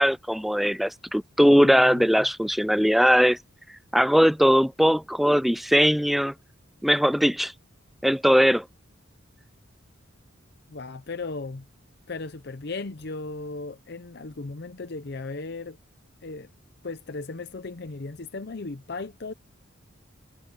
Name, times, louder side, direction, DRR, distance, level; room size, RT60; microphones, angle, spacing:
voice 1, 0.0-3.4 3.9-6.3 6.8-7.5 8.0-8.6, equal, ahead, 0.3 m, -20 dB
voice 2, 1.4-2.3 10.7-11.7 12.1-15.8 16.2-16.5 16.8-19.3, left 3 dB, 55° left, 0.7 m, -36 dB
head